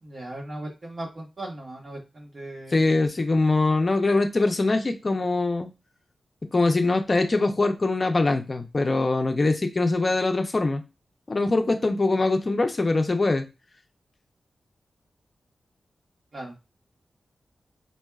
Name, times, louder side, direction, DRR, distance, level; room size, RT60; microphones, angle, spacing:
voice 1, 0.0-3.0 16.3-16.5, right 1 dB, 50° right, -1 dB, 1.4 m, -38 dB
voice 2, 2.7-5.7 6.5-10.8 11.3-13.4, left 2 dB, 35° left, 6 dB, 0.5 m, -23 dB
4.3 x 2.7 x 2.3 m, 0.26 s
wide cardioid pair, 85°, 0 cm